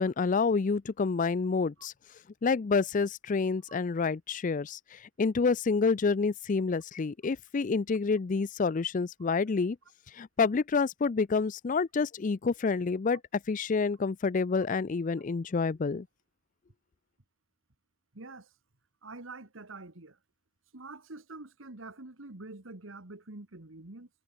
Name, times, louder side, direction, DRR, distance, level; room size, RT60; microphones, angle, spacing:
voice 1, 0.0-1.9 2.4-9.8 10.1-16.1, left 4 dB, 40° left, 0.4 m, -28 dB
voice 2, 18.1-18.5 19.0-20.2 20.7-24.1, right 2 dB, 80° right, 2.0 m, -46 dB
head